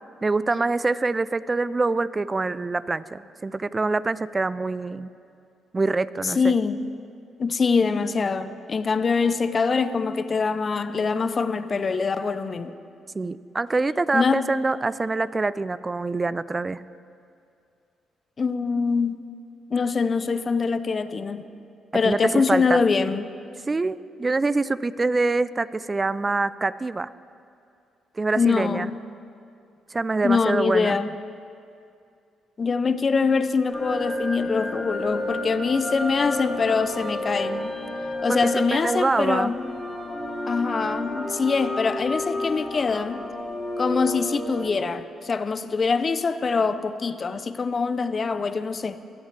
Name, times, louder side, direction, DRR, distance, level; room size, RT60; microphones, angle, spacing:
voice 1, 0.2-5.1 5.7-6.5 13.1-16.8 22.0-22.8 23.7-27.1 28.2-28.9 29.9-31.0 38.3-39.5, right 3 dB, 30° right, 17 dB, 0.4 m, -25 dB
voice 2, 6.2-6.8 7.4-12.7 14.1-14.5 18.4-19.2 19.7-21.5 21.9-23.3 28.4-29.0 30.2-31.1 32.6-37.7 38.2-39.6 40.5-43.2 43.8-49.0, left 4 dB, 45° left, 12 dB, 0.6 m, -24 dB
sound 1, 33.7-44.7, left 1 dB, 5° left, 2.4 m, -31 dB
23.0 x 8.0 x 3.3 m, 2.5 s
supercardioid pair, 55°, 0 cm